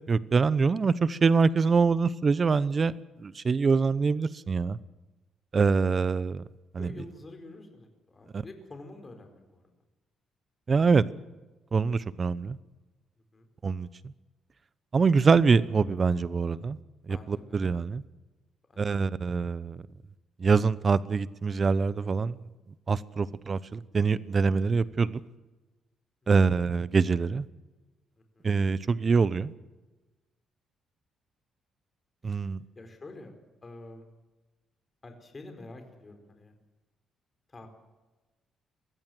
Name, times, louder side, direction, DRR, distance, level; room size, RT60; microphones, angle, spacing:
voice 1, 0.1-2.9 3.2-4.8 5.5-6.4 6.7-6.9 8.3-8.4 10.7-11.0 11.7-12.6 13.6-13.9 14.9-16.8 17.1-18.0 18.8-19.8 20.4-22.4 22.9-25.2 26.3-27.4 28.4-29.5 32.2-32.6, right 5 dB, 40° right, 18 dB, 0.9 m, -24 dB
voice 2, 6.8-9.6 13.3-13.5 17.1-17.6 18.7-19.1 28.3-28.5 32.2-33.3 33.6-34.0 35.0-36.5 37.5-37.7, left 2 dB, 30° left, 5 dB, 4.6 m, -48 dB
23.0 x 15.5 x 7.9 m, 1.1 s
cardioid pair, 90°, 0 cm